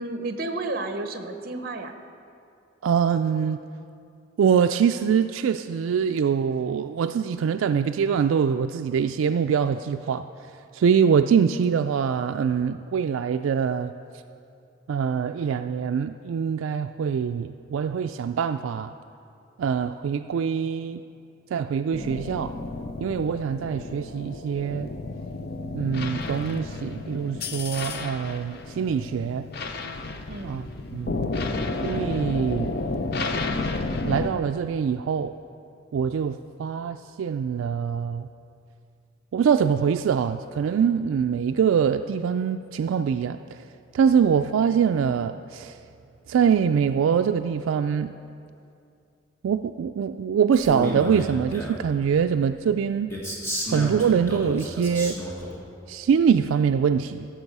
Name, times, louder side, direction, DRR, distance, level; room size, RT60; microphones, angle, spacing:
voice 1, 0.0-1.9 30.3-30.6, right 2 dB, 45° right, 7 dB, 0.8 m, -31 dB
voice 2, 2.8-3.6 4.4-10.2 10.7-13.9 14.9-18.9 19.6-21.0 21.5-22.5 23.0-24.9 25.7-29.5 30.4-30.6 30.9-31.2 31.8-32.7 34.0-35.3 35.9-38.3 39.3-43.4 43.9-45.8 46.3-48.1 49.4-53.1 53.7-55.2 55.9-57.3, right 7 dB, 85° right, 8 dB, 0.3 m, -24 dB
sound 1, 21.9-34.3, left 3 dB, 50° left, 0.6 m, -32 dB
Male speech man speaking, 50.5-51.9 53.1-55.5, left 1 dB, 15° left, 1.5 m, -32 dB
14.5 x 7.4 x 5.4 m, 2.5 s
head